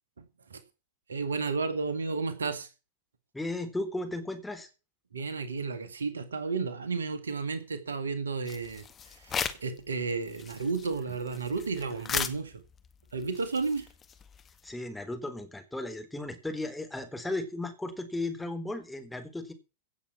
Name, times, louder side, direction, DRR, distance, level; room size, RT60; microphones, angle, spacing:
voice 1, 0.2-0.6 1.1-2.7 5.1-12.6 13.1-13.9, right 4 dB, 70° right, 2.1 m, -33 dB
voice 2, 3.3-4.7 14.6-19.5, left 2 dB, 5° left, 3.7 m, -35 dB
sound 1, 8.5-9.8 10.1-14.7, left 7 dB, 25° left, 1.8 m, -37 dB
17.0 x 7.8 x 6.0 m
figure-of-eight pair, 90°, 0 cm